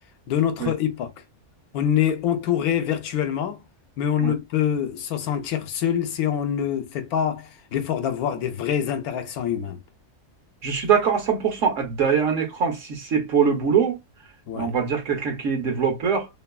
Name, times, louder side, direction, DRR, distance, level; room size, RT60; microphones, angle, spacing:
voice 1, 0.3-1.1 1.7-3.6 4.0-9.8 14.5-14.7, left 9 dB, 85° left, 1.1 m, -25 dB
voice 2, 10.6-14.0 14.5-16.3, right 6 dB, 60° right, 1.1 m, -23 dB
2.9 x 2.2 x 2.3 m
omnidirectional pair, 1.5 m